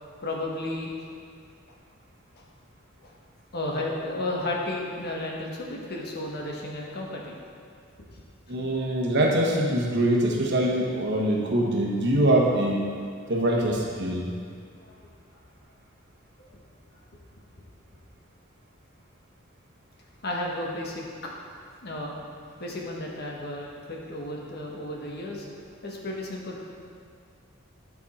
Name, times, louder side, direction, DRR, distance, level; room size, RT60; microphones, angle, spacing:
voice 1, 0.2-0.9 3.0-3.1 3.5-7.4 14.9-15.0 16.5-16.6 20.2-21.0 21.8-22.2 22.6-25.5 25.8-26.6, left 1 dB, 50° left, -1 dB, 1.3 m, -33 dB
voice 2, 8.5-12.8 13.3-14.3, right 1 dB, 60° right, -2 dB, 1.3 m, -23 dB
9.5 x 6.4 x 4.3 m, 2.2 s
head